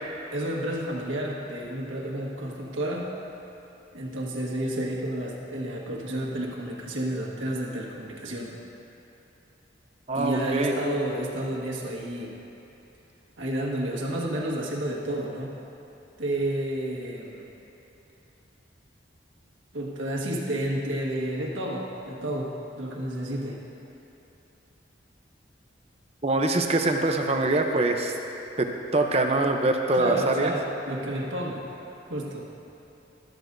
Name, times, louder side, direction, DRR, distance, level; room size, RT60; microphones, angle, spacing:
voice 1, 0.3-3.1 3.9-8.5 10.1-12.4 13.4-15.5 16.2-17.4 19.7-23.6 29.9-31.7 32.1-32.5, right 1 dB, 90° right, -2 dB, 1.6 m, -31 dB
voice 2, 10.1-10.8 26.2-28.2 28.6-30.5, right 2 dB, 30° right, 3 dB, 0.7 m, -24 dB
14.0 x 13.5 x 2.7 m, 2.9 s
head